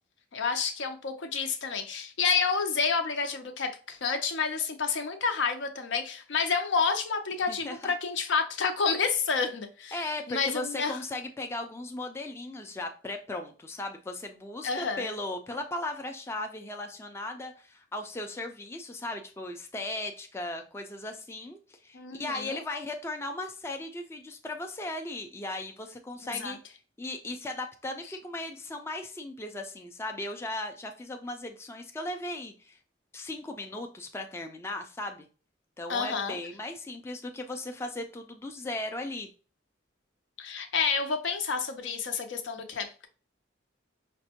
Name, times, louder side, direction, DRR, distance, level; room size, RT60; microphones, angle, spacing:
voice 1, 0.3-11.0 14.6-15.1 21.9-22.6 26.2-26.6 35.9-36.4 40.4-43.1, left 5 dB, 75° left, 0.6 m, -29 dB
voice 2, 7.5-7.9 9.9-32.8 33.1-35.3 35.8-39.3, left 2 dB, 15° left, 0.3 m, -37 dB
5.1 x 2.1 x 2.8 m
head